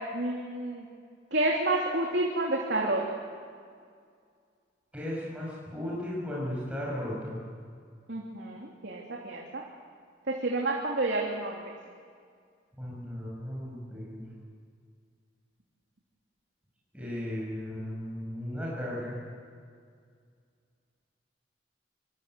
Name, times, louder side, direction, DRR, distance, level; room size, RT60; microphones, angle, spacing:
voice 1, 0.1-0.9 1.3-3.2 8.1-9.6 10.3-11.6, right 2 dB, 80° right, -2 dB, 3.1 m, -29 dB
voice 2, 4.9-7.4 12.8-14.2 16.9-19.2, left 1 dB, 5° right, -6 dB, 7.2 m, -35 dB
25.5 x 24.5 x 8.2 m, 2.1 s
head